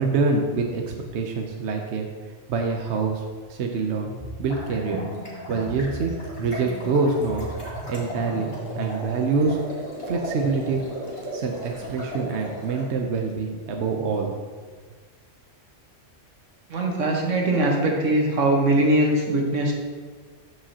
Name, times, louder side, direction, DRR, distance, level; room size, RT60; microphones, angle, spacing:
voice 1, 0.0-2.1 2.5-3.2 3.5-4.1 4.4-5.1 5.5-6.1 6.4-7.5 7.9-8.5 8.8-9.6 10.1-10.8 11.3-14.3, right 4 dB, 70° right, 2 dB, 1.0 m, -25 dB
sound 1, 4.0-9.0, equal, 15° left, 2.2 m, -38 dB
sound 2, 4.5-12.8, right 1 dB, 65° left, 2.2 m, -36 dB
voice 2, 16.7-19.7, right 1 dB, 85° right, 0 dB, 1.6 m, -21 dB
13.0 x 4.9 x 2.8 m, 1.5 s
omnidirectional pair, 1.3 m